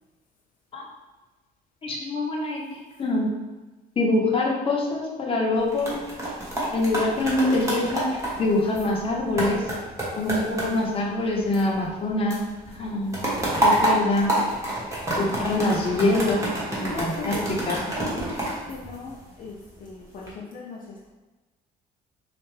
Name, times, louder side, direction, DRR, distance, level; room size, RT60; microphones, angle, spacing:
voice 1, 1.8-3.3 4.0-6.0 6.7-9.7 10.2-12.4 12.8-13.3 13.6-14.4 15.2-17.8, left 2 dB, 35° left, -2 dB, 0.9 m, -25 dB
sound 1, 5.5-12.0 12.3-19.5 20.0-20.3, right 1 dB, 15° right, 1.2 m, -28 dB
voice 2, 16.7-17.5 17.9-21.1, left 3 dB, 55° left, -3 dB, 0.6 m, -38 dB
4.3 x 2.5 x 3.2 m, 1.2 s
cardioid pair, 110°, 17 cm